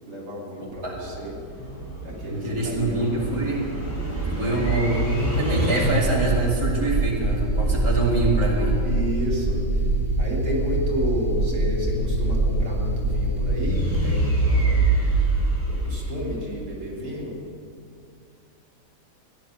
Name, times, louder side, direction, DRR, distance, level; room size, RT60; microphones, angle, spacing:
voice 1, 0.1-1.3 2.0-3.2 4.3-4.6 8.8-9.8 10.2-14.9 15.7-17.4, equal, 70° right, -3 dB, 3.7 m, -31 dB
voice 2, 0.6-1.0 2.3-3.7 4.4-5.0 5.4-8.8, right 2 dB, 15° right, -4 dB, 2.3 m, -25 dB
sound 1, 0.7-16.7, right 2 dB, 10° left, 4.1 m, -24 dB
17.5 x 10.5 x 6.5 m, 2.4 s
omnidirectional pair, 1.9 m